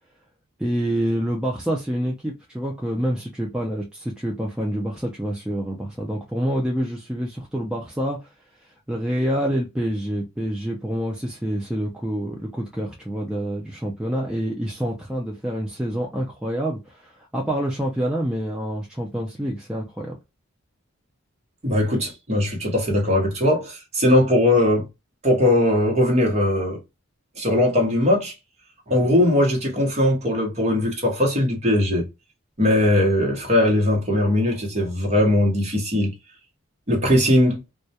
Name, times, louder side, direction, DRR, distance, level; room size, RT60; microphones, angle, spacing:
voice 1, 0.6-8.3 8.6-20.2, equal, 5° right, 0.3 m, -27 dB
voice 2, 21.6-24.8 25.2-26.8 27.4-28.3 28.9-32.1 32.6-36.1 36.9-37.6, left 1 dB, 30° right, 0.8 m, -20 dB
2.2 x 2.1 x 2.7 m
head